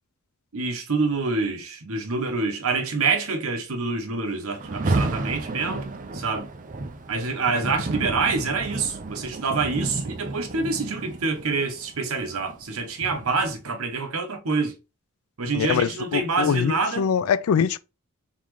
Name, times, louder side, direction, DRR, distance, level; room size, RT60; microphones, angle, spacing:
voice 1, 0.5-5.9 6.1-6.5 7.1-14.7 15.4-17.1, right 4 dB, 70° right, 0.9 m, -26 dB
Rain, 4.6-13.6, right 2 dB, 35° right, 0.5 m, -32 dB
voice 2, 15.5-17.8, left 7 dB, 70° left, 0.3 m, -23 dB
4.1 x 3.7 x 3.1 m
head